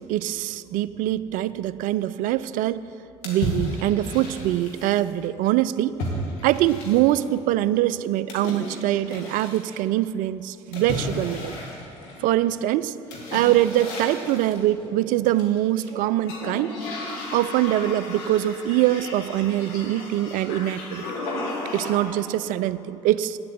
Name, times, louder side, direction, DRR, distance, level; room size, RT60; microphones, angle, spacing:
voice 1, 0.0-2.9 3.2-6.0 6.4-11.5 12.2-13.0 13.3-16.7 17.3-21.0 21.7-23.4, right 14 dB, 60° right, 16 dB, 0.4 m, -23 dB
sound 1, 3.2-5.0 6.0-7.3 8.3-9.7 10.7-12.4 13.1-14.6 15.3-15.9 16.2-22.2, left 1 dB, 75° left, 1.9 m, -34 dB
9.5 x 7.5 x 7.5 m, 2.7 s
hypercardioid pair, 60°, 16 cm